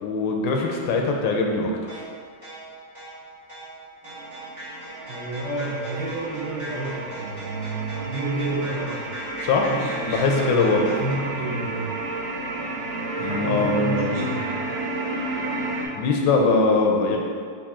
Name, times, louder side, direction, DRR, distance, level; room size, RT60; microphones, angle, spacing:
voice 1, 0.0-2.1 9.4-9.7 10.1-10.9 13.2-14.4 15.9-17.2, left 3 dB, 90° left, 1 dB, 1.3 m, -22 dB
sound 1, 1.9-11.1, right 1 dB, 20° right, 1.0 m, -39 dB
sound 2, 4.0-15.9, right 2 dB, 80° right, 1.4 m, -32 dB
voice 2, 5.1-9.2 9.7-11.9 13.2-14.7, right 2 dB, 60° right, -7 dB, 0.9 m, -30 dB
5.4 x 2.5 x 3.6 m, 2.1 s
omnidirectional pair, 2.0 m